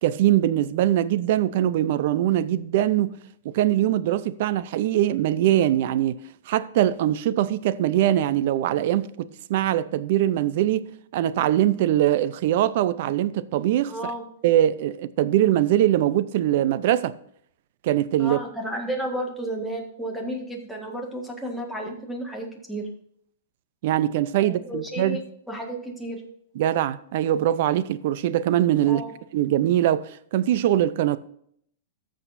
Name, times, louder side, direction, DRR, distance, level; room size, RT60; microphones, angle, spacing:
voice 1, 0.0-3.1 3.4-6.2 6.5-14.1 14.4-17.1 17.8-18.4 23.8-25.2 26.6-29.0 29.3-31.2, right 12 dB, 55° right, 0.6 m, -22 dB
voice 2, 13.9-14.2 18.2-22.8 24.4-25.2 25.5-26.2 28.8-29.1, right 1 dB, ahead, 1.8 m, -32 dB
14.0 x 6.4 x 2.7 m
hypercardioid pair, 145°, 0 cm